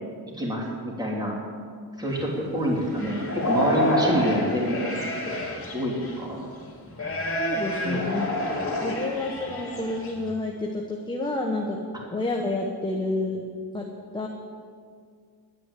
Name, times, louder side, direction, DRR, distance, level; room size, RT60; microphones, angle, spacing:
voice 1, 0.4-1.3 2.0-5.4 5.7-6.4 7.8-8.1, equal, 10° right, -3 dB, 2.8 m, -27 dB
sound 1, 2.1-2.2 2.7-6.3 6.9-10.3, equal, 35° left, 3.2 m, -29 dB
voice 2, 7.3-8.3 8.8-11.8 12.1-13.4 13.7-13.8 14.1-14.3, left 2 dB, 10° left, 0 dB, 1.1 m, -29 dB
11.0 x 9.6 x 8.4 m, 2.1 s
cardioid pair, 135°, 39 cm